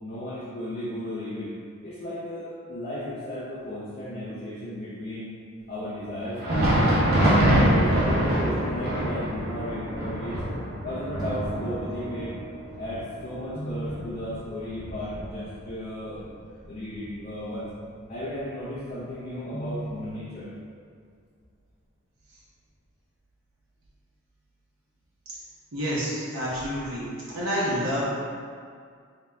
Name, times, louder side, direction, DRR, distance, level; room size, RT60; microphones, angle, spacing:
voice 1, 0.0-1.5 1.8-5.3 5.7-6.9 7.3-10.4 10.8-12.4 12.8-16.2 16.7-17.7 18.1-20.5, equal, 35° left, -10 dB, 0.7 m, -34 dB
Thunder, 6.2-15.7 16.0-16.2 16.9-17.1 18.1-18.2, equal, 50° right, 0.8 m, -25 dB
Acoustic guitar, 11.2-13.6, right 2 dB, 20° right, 0.8 m, -39 dB
voice 2, 25.7-27.0 27.3-28.1, equal, 90° right, -8 dB, 0.7 m, -28 dB
3.5 x 2.8 x 3.3 m, 2.1 s
head